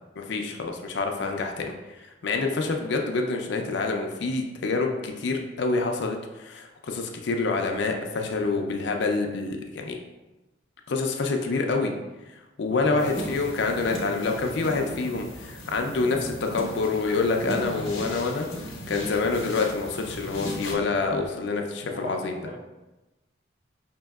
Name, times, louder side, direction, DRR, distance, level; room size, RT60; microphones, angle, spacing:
voice 1, 0.2-1.7 2.0-10.0 10.9-11.9 12.6-18.5 18.9-22.4, left 3 dB, 60° left, 3 dB, 0.4 m, -27 dB
voice 2, 12.6-13.3 21.9-22.6, equal, 30° right, -3 dB, 0.6 m, -39 dB
sound 1, 12.7-21.2, right 2 dB, 65° right, 0.5 m, -42 dB
sound 2, 13.0-20.7, left 1 dB, 80° left, 0.7 m, -39 dB
5.2 x 2.7 x 2.3 m, 1.0 s
head